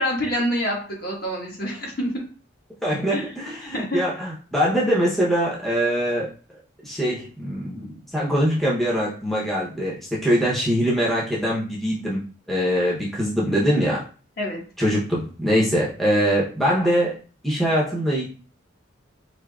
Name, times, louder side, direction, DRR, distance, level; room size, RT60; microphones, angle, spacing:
voice 1, 0.0-2.2 3.1-3.3 3.6-4.0 14.4-14.6, equal, 50° left, -2 dB, 1.2 m, -26 dB
voice 2, 2.8-6.3 6.8-9.9 10.2-12.2 12.5-14.0 14.8-17.2 17.4-18.3, equal, ahead, -6 dB, 0.7 m, -22 dB
4.8 x 2.7 x 2.3 m, 0.38 s
head